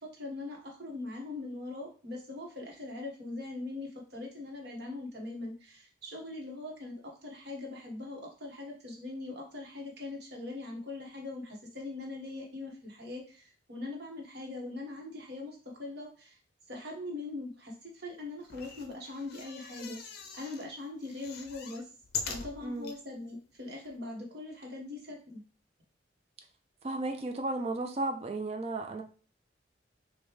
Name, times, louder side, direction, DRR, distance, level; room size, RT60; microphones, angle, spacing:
voice 1, 0.0-6.9 7.2-16.4 16.7-20.0 20.3-21.9 22.2-25.4, left 2 dB, 60° right, 0 dB, 1.2 m, -41 dB
sound 1, 18.4-20.7 21.0-23.0 23.6-23.7 23.8-23.9, left 6 dB, 55° left, 0.5 m, -42 dB
voice 2, 26.8-29.0, right 2 dB, 35° right, 4 dB, 0.4 m, -34 dB
5.1 x 2.2 x 3.1 m, 0.38 s
head